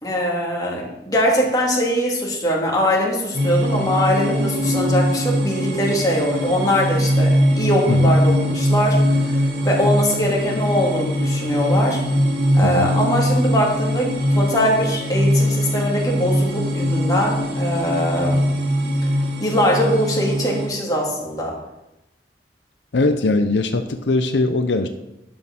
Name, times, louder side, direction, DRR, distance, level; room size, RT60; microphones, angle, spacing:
voice 1, 0.0-12.0 12.5-18.4 19.4-21.6, equal, 20° left, -2 dB, 2.4 m, -22 dB
sound 1, 3.3-20.7, equal, 75° right, 2.6 m, -21 dB
voice 2, 22.9-24.9, left 2 dB, 80° left, 8 dB, 0.7 m, -20 dB
11.0 x 6.3 x 6.0 m, 0.92 s
head